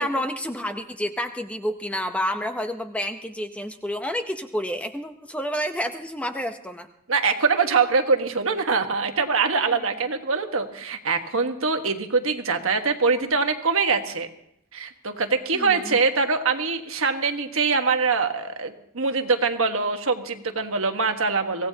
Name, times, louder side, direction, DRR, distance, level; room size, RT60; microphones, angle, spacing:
voice 1, 0.0-6.9 15.5-16.0, equal, 5° left, 6 dB, 0.7 m, -29 dB
voice 2, 7.1-14.3 14.7-21.7, right 4 dB, 65° right, 5 dB, 1.4 m, -23 dB
24.5 x 16.5 x 2.9 m, 0.76 s
head